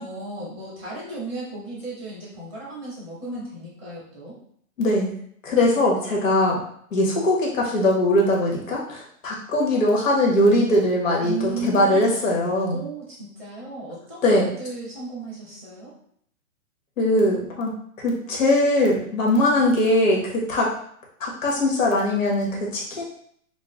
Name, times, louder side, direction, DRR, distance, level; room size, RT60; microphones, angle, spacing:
voice 1, 0.0-4.3 11.2-12.0 12.3-15.9, right 3 dB, 10° left, -15 dB, 0.5 m, -35 dB
voice 2, 4.8-5.1 5.4-6.6 6.9-12.8 14.2-14.5 17.0-20.7 21.2-23.0, left 1 dB, 60° left, -2 dB, 1.4 m, -21 dB
5.8 x 2.1 x 2.4 m, 0.65 s
hypercardioid pair, 160°, 44 cm